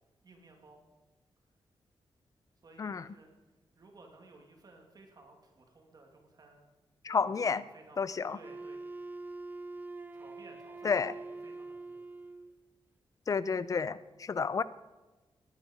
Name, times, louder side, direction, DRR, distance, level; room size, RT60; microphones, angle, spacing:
voice 1, 0.2-0.8 2.6-3.3 3.8-6.7 7.1-9.1 10.1-12.1, right 2 dB, 45° right, 2 dB, 2.4 m, -57 dB
voice 2, 7.0-7.6 8.0-8.4 10.8-11.1 13.3-14.6, left 5 dB, 35° left, 17 dB, 0.5 m, -30 dB
Wind instrument woodwind instrument, 8.4-12.6, right 3 dB, 20° right, 0.7 m, -44 dB
19.5 x 9.9 x 5.3 m, 1.2 s
wide cardioid pair, 170°, 10 cm